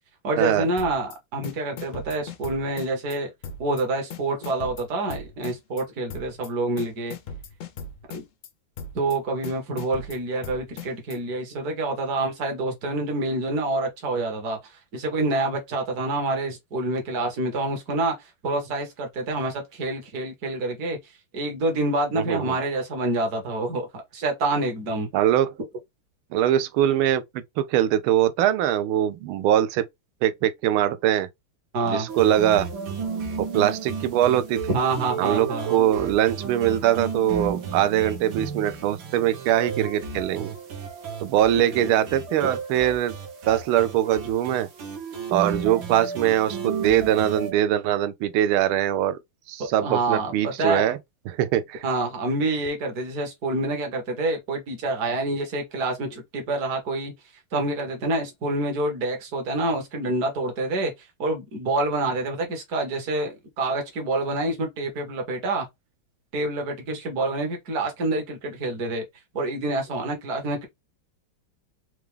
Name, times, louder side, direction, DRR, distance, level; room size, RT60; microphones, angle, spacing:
voice 1, 0.2-3.3 3.6-7.1 8.1-8.2 8.9-18.1 18.4-21.0 21.3-23.9 24.1-25.1 31.7-32.1 34.7-35.7 41.7-41.9 49.8-50.9 51.8-57.1 57.5-60.9 61.2-65.7 66.3-69.0 69.3-70.7, right 2 dB, 50° right, 1.6 m, -27 dB
sound 1, 0.8-1.2 1.4-3.2 3.4-3.8 4.1-5.8 6.1-6.5 6.8-8.5 8.8-9.2 9.4-11.2, left 4 dB, 85° left, 0.7 m, -38 dB
voice 2, 22.2-22.5 25.1-25.5 26.3-29.8 30.2-31.3 31.9-32.7 33.4-34.6 35.2-40.5 41.2-43.2 43.5-44.7 45.3-49.2 49.5-51.0 51.3-51.8, right 11 dB, 85° right, 1.4 m, -22 dB
sound 2, 32.1-47.5, right 6 dB, 70° right, 1.8 m, -33 dB
4.6 x 2.4 x 3.2 m
omnidirectional pair, 2.3 m